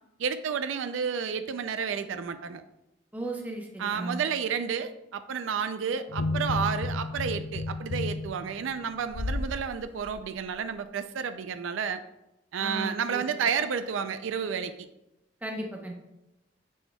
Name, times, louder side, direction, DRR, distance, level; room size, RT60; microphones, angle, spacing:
voice 1, 0.2-2.6 3.8-12.0 12.5-14.7, right 6 dB, 85° right, 10 dB, 0.4 m, -31 dB
voice 2, 3.1-4.2 12.6-13.5 15.4-15.9, right 1 dB, 10° right, 0 dB, 0.8 m, -36 dB
sound 1, 6.1-9.5 10.0-10.1, left 2 dB, 70° left, 0.5 m, -32 dB
7.0 x 6.2 x 2.3 m, 0.91 s
head